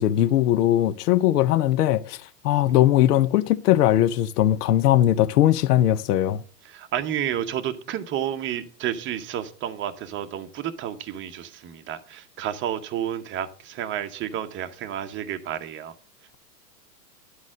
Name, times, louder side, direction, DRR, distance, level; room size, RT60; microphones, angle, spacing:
voice 1, 0.0-2.2 2.4-6.4, left 12 dB, 70° left, 0.6 m, -20 dB
voice 2, 6.6-15.9, right 10 dB, 25° right, 0.8 m, -31 dB
11.0 x 4.1 x 6.1 m
hypercardioid pair, 110°, 49 cm